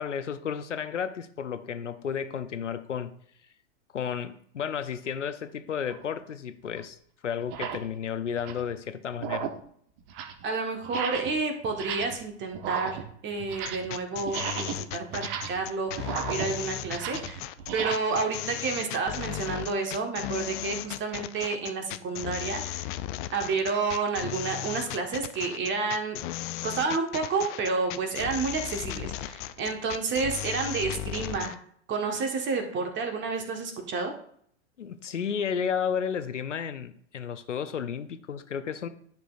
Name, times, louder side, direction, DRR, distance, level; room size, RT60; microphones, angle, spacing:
voice 1, 0.0-3.1 3.9-7.0 7.2-9.5 34.8-38.9, left 7 dB, 85° left, 12 dB, 0.7 m, -32 dB
sound 1, 5.8-6.0 6.8-6.9 7.4-7.9 8.3-8.7 9.1-9.7 10.0-10.4 10.8-11.4 11.7-12.3 12.5-14.0 14.2-17.9, right 8 dB, 50° right, 1.0 m, -35 dB
voice 2, 10.4-17.4 17.7-22.9 23.3-26.2 26.6-31.5 31.9-34.1, right 4 dB, 30° right, 3 dB, 1.6 m, -30 dB
sound 2, 13.6-31.6, left 14 dB, 45° left, 0.5 m, -36 dB
10.5 x 6.2 x 2.6 m, 0.63 s
hypercardioid pair, 95°, 35 cm